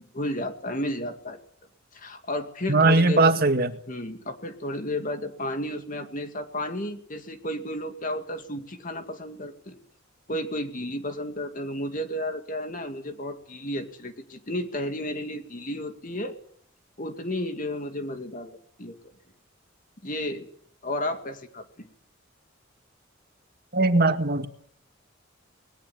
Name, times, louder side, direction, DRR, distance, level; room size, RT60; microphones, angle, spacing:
voice 1, 0.1-1.4 1.9-3.3 3.9-9.8 10.3-16.4 17.0-19.1 20.0-20.5 20.8-21.9, left 1 dB, 40° left, 7 dB, 2.4 m, -32 dB
voice 2, 2.7-3.7 23.7-24.5, right 3 dB, 50° right, 7 dB, 2.1 m, -20 dB
21.0 x 18.5 x 9.7 m, 0.62 s
head